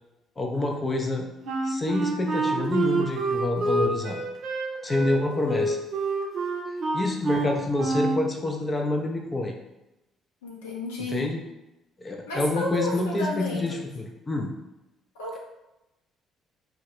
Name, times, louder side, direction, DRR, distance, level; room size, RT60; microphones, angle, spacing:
voice 1, 0.4-1.3 1.6-4.2 4.8-5.8 6.9-9.5 11.1-11.4 12.0-14.5, left 2 dB, 30° left, 1 dB, 0.4 m, -27 dB
Wind instrument woodwind instrument, 1.5-8.3, right 3 dB, 55° right, 0.5 m, -27 dB
voice 2, 10.4-11.3 12.3-13.8 15.1-15.4, left 1 dB, 80° left, -4 dB, 0.6 m, -32 dB
2.1 x 2.0 x 3.6 m, 0.94 s
hypercardioid pair, 50°, 0 cm